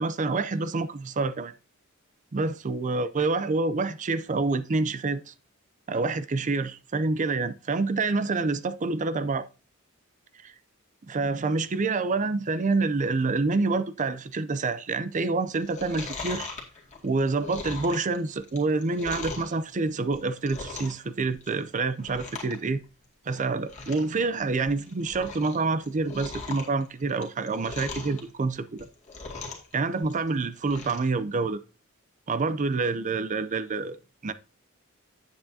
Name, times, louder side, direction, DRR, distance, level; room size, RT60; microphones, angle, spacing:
voice 1, 0.0-1.5 2.3-5.3 5.9-9.5 10.4-10.5 11.1-16.5 17.0-22.8 23.3-28.9 29.7-31.6 32.3-34.0 34.2-34.3, right 3 dB, 35° right, 0.5 m, -27 dB
Chewing mastication, 15.6-19.5 20.0-21.1 21.3-21.7 22.0-22.6 22.8-22.9 23.4-23.5 23.7-24.1 24.5-25.6 25.8-28.2 28.7-29.7 30.0-31.1 31.5-31.6, left 4 dB, 35° left, 2.1 m, -39 dB
9.1 x 8.0 x 2.7 m
head